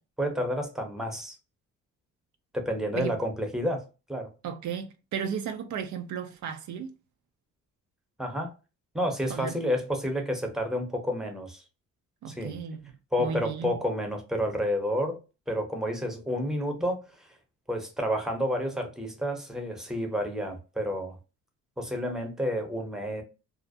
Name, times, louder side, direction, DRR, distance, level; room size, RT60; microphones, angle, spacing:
voice 1, 0.2-1.3 2.5-3.8 4.1-4.3 8.2-8.5 8.9-11.6 12.3-12.6 13.1-15.2 15.5-17.3 17.7-21.2 21.8-23.2, equal, ahead, 0.7 m, -30 dB
voice 2, 4.4-6.9 9.3-9.6 12.2-12.9 13.2-13.8, right 7 dB, 70° right, 0.5 m, -34 dB
2.4 x 2.1 x 2.5 m
cardioid pair, 90°, 30 cm